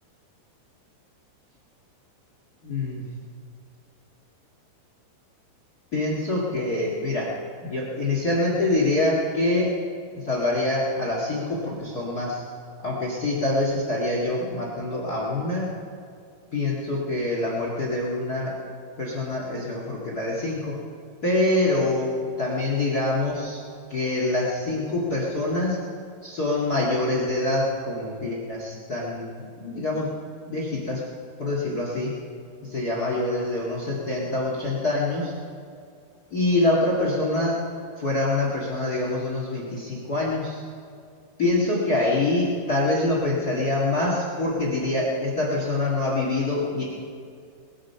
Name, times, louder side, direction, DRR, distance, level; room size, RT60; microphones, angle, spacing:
voice 1, 2.6-3.0 5.9-7.3 7.6-9.7 10.1-12.4 12.8-15.7 16.5-18.5 19.0-20.8 21.2-22.1 22.4-23.6 23.9-25.8 26.2-29.3 29.6-30.1 30.4-31.0 31.4-32.1 32.6-35.3 36.3-37.6 38.0-40.6 41.4-46.8, left 2 dB, 50° left, -3 dB, 1.1 m, -25 dB
21.0 x 8.8 x 5.6 m, 2.3 s
omnidirectional pair, 4.8 m